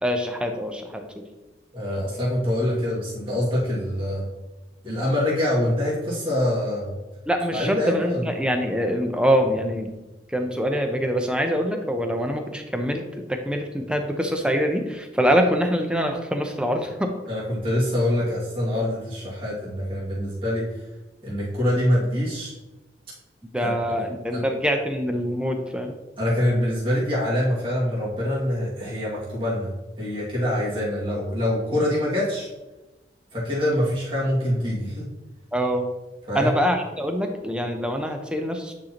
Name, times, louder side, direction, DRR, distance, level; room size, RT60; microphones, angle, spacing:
voice 1, 0.0-1.0 7.3-10.0 10.3-17.1 23.5-25.9 35.5-35.9 36.3-38.7, equal, 5° right, 4 dB, 0.6 m, -24 dB
voice 2, 1.7-4.3 4.8-7.0 7.5-8.3 17.3-20.7 21.2-22.5 23.6-23.8 24.3-24.4 26.2-29.7 30.0-32.5 33.3-35.1 36.3-36.5, left 1 dB, 30° right, -7 dB, 2.1 m, -25 dB
9.1 x 4.3 x 2.9 m, 1.1 s
head